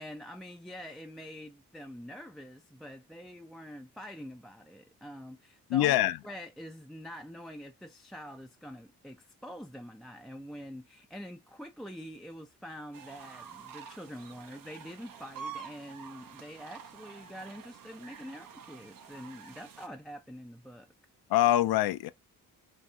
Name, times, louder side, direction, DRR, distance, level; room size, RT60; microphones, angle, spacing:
voice 1, 0.0-20.9, equal, ahead, 0.4 m, -45 dB
voice 2, 5.7-6.2 21.3-22.1, left 14 dB, 65° left, 0.5 m, -24 dB
sound 1, 12.9-19.9, right 7 dB, 55° right, 0.6 m, -48 dB
3.4 x 2.5 x 2.2 m
hypercardioid pair, 40°, 41 cm